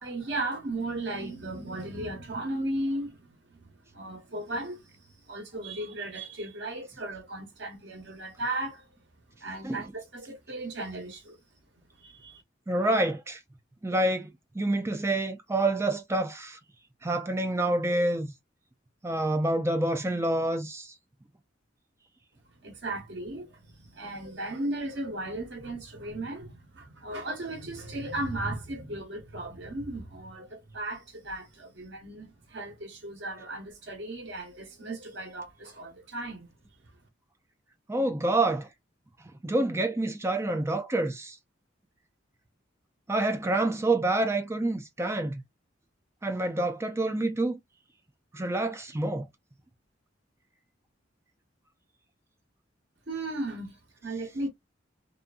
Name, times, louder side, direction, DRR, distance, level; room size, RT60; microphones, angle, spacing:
voice 1, 0.0-8.8 9.4-11.4 12.0-12.4 22.6-36.5 53.1-54.5, right 2 dB, 65° right, 1.1 m, -36 dB
voice 2, 12.7-13.4 13.8-14.3 14.5-16.6 17.0-18.3 19.0-20.9 37.9-38.7 39.4-41.4 43.1-45.4 46.2-47.6 48.3-49.3, right 2 dB, 15° right, 0.4 m, -27 dB
2.6 x 2.5 x 2.3 m
head